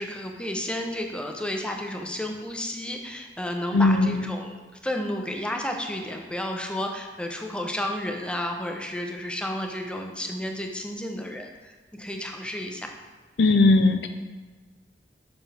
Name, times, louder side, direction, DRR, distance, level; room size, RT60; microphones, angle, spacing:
voice 1, 0.0-12.9, left 1 dB, 5° left, 3 dB, 0.6 m, -32 dB
voice 2, 3.7-4.2 13.4-14.1, left 2 dB, 75° left, 8 dB, 0.5 m, -19 dB
6.9 x 6.0 x 3.4 m, 1.4 s
head